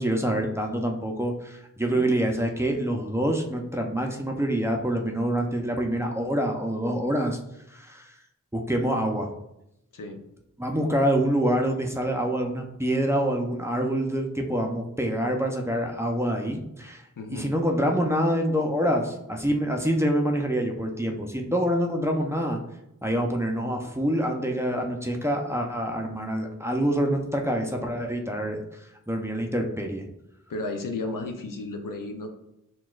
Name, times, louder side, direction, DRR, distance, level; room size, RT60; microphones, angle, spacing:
voice 1, 0.0-7.4 7.7-8.1 8.5-9.3 10.6-17.0 17.3-22.6 23.0-28.6 29.1-30.0, right 1 dB, 10° right, 1 dB, 0.6 m, -26 dB
voice 2, 17.2-17.5 30.5-32.3, left 2 dB, 80° left, 4 dB, 0.5 m, -33 dB
6.0 x 2.3 x 2.4 m, 0.84 s
wide cardioid pair, 45°, 32 cm